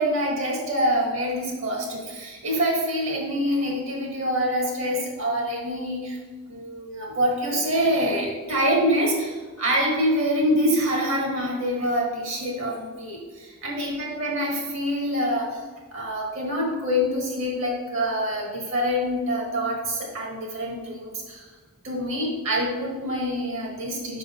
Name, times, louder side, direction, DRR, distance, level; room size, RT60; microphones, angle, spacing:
voice 1, 0.0-6.2 6.5-15.6 15.9-21.5 21.8-24.2, equal, 60° right, -2 dB, 1.5 m, -25 dB
5.6 x 3.7 x 5.3 m, 1.3 s
head